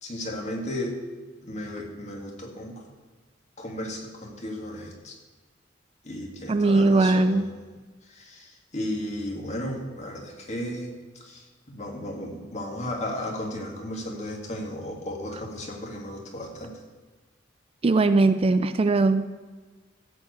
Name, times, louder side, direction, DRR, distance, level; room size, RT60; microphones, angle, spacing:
voice 1, 0.0-1.0 1.4-2.8 3.6-5.1 6.0-7.5 8.1-10.9 11.2-16.7, left 1 dB, 40° left, 0 dB, 2.3 m, -34 dB
voice 2, 6.5-7.5 17.8-19.3, right 3 dB, 30° right, 11 dB, 0.4 m, -20 dB
14.5 x 4.8 x 8.3 m, 1.3 s
head